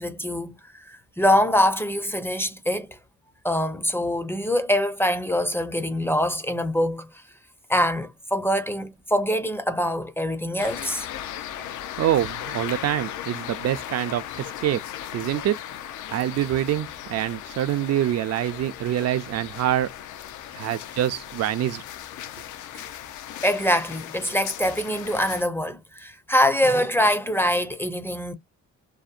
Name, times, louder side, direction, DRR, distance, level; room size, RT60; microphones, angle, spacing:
voice 1, 0.0-3.0 3.4-7.1 7.7-11.1 22.7-22.8 23.4-28.3, equal, 10° left, 0.4 m, -24 dB
sound 1, 10.6-25.4, left 11 dB, 80° left, 0.5 m, -37 dB
voice 2, 11.6-14.8 15.1-15.6 16.1-19.9 20.6-21.8, right 12 dB, 55° right, 0.4 m, -25 dB
2.7 x 2.0 x 2.4 m
cardioid pair, 90°, 30 cm